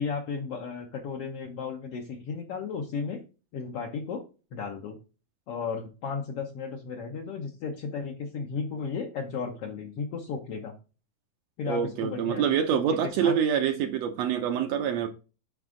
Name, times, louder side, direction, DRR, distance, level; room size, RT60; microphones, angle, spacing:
voice 1, 0.0-3.2 3.5-4.2 4.5-5.0 5.5-10.7 11.6-12.5 13.2-13.4, left 5 dB, 65° left, 1.7 m, -34 dB
voice 2, 11.7-15.1, right 8 dB, 70° right, 1.8 m, -26 dB
9.6 x 4.9 x 3.7 m
omnidirectional pair, 3.4 m